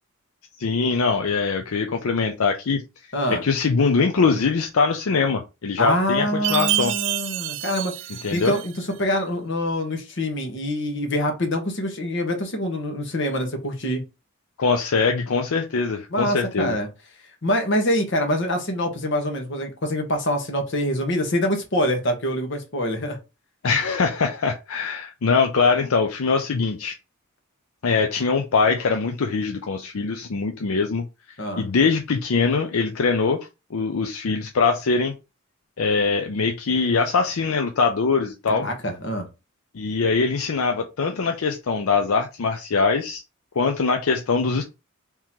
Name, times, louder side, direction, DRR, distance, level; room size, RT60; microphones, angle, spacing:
voice 1, 0.6-2.8 3.3-6.9 8.2-8.5 14.6-16.8 23.6-26.9 27.8-31.1 31.6-35.1 35.8-38.7 39.7-43.2 43.6-44.6, left 4 dB, 80° left, 0.5 m, -22 dB
voice 2, 3.1-3.4 5.8-7.9 8.3-8.7 9.0-14.0 16.1-16.9 17.4-23.2 31.4-31.6 38.5-39.3, left 1 dB, 55° left, 1.2 m, -25 dB
Chime, 6.4-8.9, right 17 dB, 60° right, 0.3 m, -27 dB
3.7 x 2.9 x 4.4 m
head